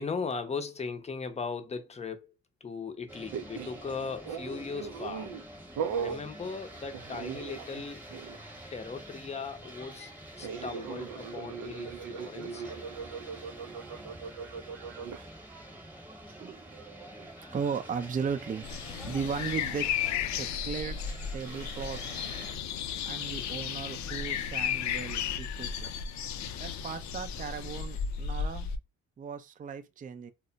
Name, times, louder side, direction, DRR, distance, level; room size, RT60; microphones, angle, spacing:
voice 1, 0.0-2.3 2.6-5.3 6.0-8.0 8.7-10.1 10.4-12.6 14.9-15.4, left 4 dB, 20° left, 0.6 m, -38 dB
sound 1, 3.1-22.6, right 1 dB, 5° right, 1.0 m, -47 dB
sound 2, 3.3-3.8 4.2-5.4 5.8-6.2 6.9-8.4 10.4-15.3, right 7 dB, 85° right, 0.5 m, -38 dB
voice 2, 16.4-18.7 19.0-19.9 20.3-21.0 21.3-22.3 23.1-25.9 26.6-28.7 29.2-30.3, right 6 dB, 30° right, 0.4 m, -37 dB
sound 3, 18.6-28.8, left 8 dB, 65° left, 0.5 m, -34 dB
2.1 x 2.1 x 3.8 m
cardioid pair, 90°, 30 cm